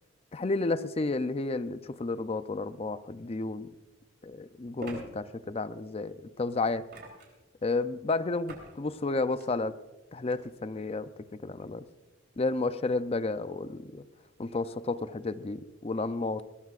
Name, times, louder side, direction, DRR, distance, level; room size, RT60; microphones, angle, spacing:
voice 1, 0.3-3.7 4.3-6.9 7.6-9.8 10.1-11.8 12.4-14.0 14.4-16.5, left 3 dB, 30° left, 13 dB, 0.5 m, -32 dB
sound 1, 3.3-3.4 4.8-5.0 6.9-7.4 8.5-8.7 9.2-9.5 10.3-10.4, right 1 dB, 55° right, 3.5 m, -43 dB
21.0 x 17.0 x 2.5 m, 1.1 s
head